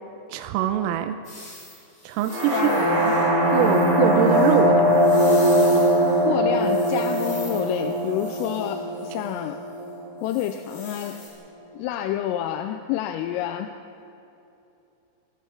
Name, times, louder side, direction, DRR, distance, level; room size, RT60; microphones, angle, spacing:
voice 1, 0.3-1.2 2.0-2.9 3.5-5.1, right 10 dB, 85° right, 7 dB, 3.4 m, -24 dB
sound 1, 1.2-6.2 6.6-9.4 10.2-11.3, left 2 dB, 35° left, 7.6 m, -43 dB
sound 2, 2.3-10.1, equal, 50° right, 9.4 m, -21 dB
voice 2, 2.5-3.2 6.2-9.6 10.2-11.2 11.7-13.7, left 11 dB, 85° left, 7 dB, 3.3 m, -29 dB
27.0 x 23.0 x 5.0 m, 2.8 s
omnidirectional pair, 5.9 m